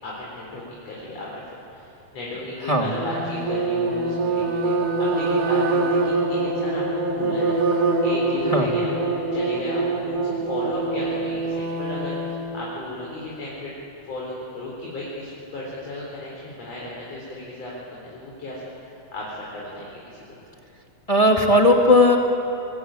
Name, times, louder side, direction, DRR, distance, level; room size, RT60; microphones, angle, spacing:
voice 1, 0.0-1.4 1.7-13.7 14.0-20.2, left 2 dB, 50° left, -5 dB, 5.1 m, -34 dB
sound 1, 2.9-12.5, right 3 dB, 50° right, 3.2 m, -24 dB
voice 2, 21.1-22.2, left 1 dB, 15° left, 1 dB, 1.5 m, -17 dB
27.0 x 22.0 x 9.1 m, 2.9 s
omnidirectional pair, 3.9 m